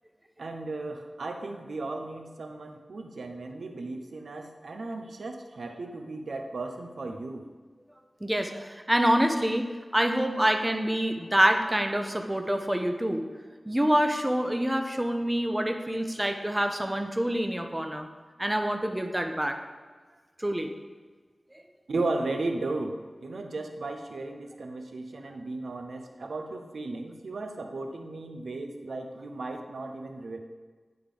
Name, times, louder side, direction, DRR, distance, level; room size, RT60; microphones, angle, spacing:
voice 1, 0.4-7.5 21.9-30.4, right 2 dB, 90° right, 5 dB, 0.7 m, -35 dB
voice 2, 8.2-9.7 9.9-13.2 13.7-18.1 18.4-19.6 20.4-20.7, equal, 15° right, 5 dB, 0.6 m, -26 dB
9.4 x 3.5 x 5.1 m, 1.4 s
wide cardioid pair, 90°, 0 cm